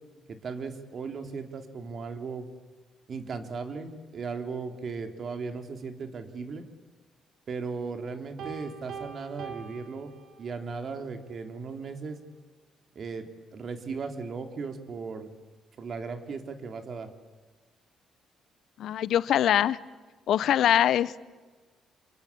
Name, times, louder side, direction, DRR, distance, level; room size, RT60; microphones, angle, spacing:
voice 1, 0.3-2.5 3.1-6.6 7.5-10.1 10.4-12.2 12.9-13.3 13.5-15.3 15.8-17.1, right 4 dB, 50° right, 7 dB, 3.4 m, -37 dB
Piano, 8.4-10.8, right 6 dB, 75° right, 4.1 m, -42 dB
voice 2, 18.8-19.8 20.3-21.2, left 11 dB, 75° left, 18 dB, 0.8 m, -23 dB
28.5 x 24.0 x 8.6 m, 1.3 s
cardioid pair, 90°, 0 cm